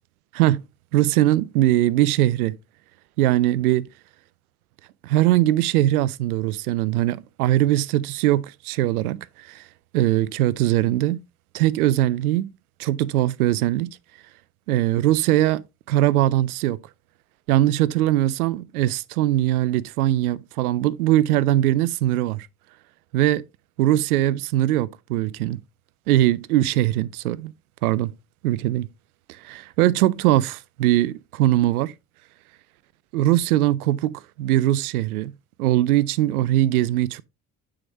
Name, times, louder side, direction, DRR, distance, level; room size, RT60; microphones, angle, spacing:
voice 1, 0.9-2.6 3.2-3.9 5.0-9.6 9.9-11.2 11.5-12.5 12.8-14.0 14.7-16.8 17.5-22.5 23.1-23.4 23.8-25.6 26.1-27.5 27.8-28.1 28.4-28.9 29.3-31.9 33.1-35.3 35.6-37.2, right 14 dB, 85° right, 0.5 m, -21 dB
8.9 x 5.0 x 2.9 m
hypercardioid pair, 55°, 43 cm